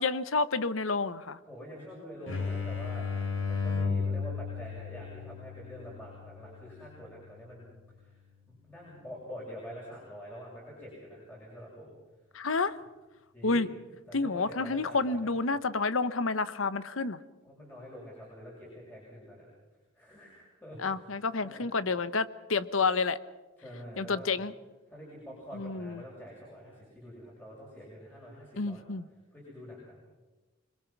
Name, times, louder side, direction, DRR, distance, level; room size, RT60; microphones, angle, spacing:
voice 1, 0.0-1.4 12.3-12.8 13.4-13.7 14.1-17.2 20.8-23.2 24.0-24.5 25.5-26.0 28.6-29.1, left 4 dB, 90° left, 14 dB, 1.0 m, -29 dB
voice 2, 1.5-3.1 3.4-7.7 8.0-8.2 8.6-11.9 12.5-12.6 13.3-13.7 14.1-15.3 17.4-19.5 20.0-20.8 21.4-21.7 23.6-24.3 24.9-28.8 29.3-30.0, equal, 10° left, -6 dB, 7.3 m, -46 dB
sound 1, 2.3-7.8, left 5 dB, 70° left, 4.2 m, -35 dB
26.5 x 21.5 x 6.1 m, 1.2 s
head